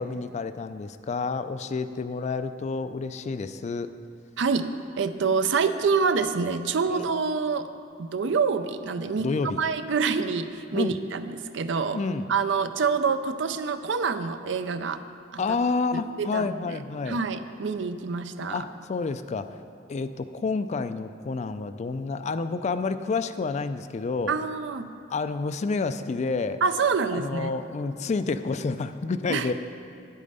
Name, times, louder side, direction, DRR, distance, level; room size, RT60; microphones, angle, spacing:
voice 1, 0.0-3.9 6.9-7.1 9.2-9.6 10.7-11.0 11.9-12.3 15.4-17.2 18.5-19.5 19.9-24.4 25.1-26.6 27.1-29.5, left 4 dB, 35° left, 11 dB, 0.4 m, -29 dB
voice 2, 4.4-4.7 5.0-7.7 8.0-9.3 9.6-12.0 12.3-15.0 15.3-15.4 15.9-16.8 17.1-18.6 24.3-24.9 26.6-27.5 29.3-29.5, right 5 dB, 70° right, 10 dB, 0.5 m, -26 dB
9.8 x 8.4 x 5.4 m, 2.5 s
head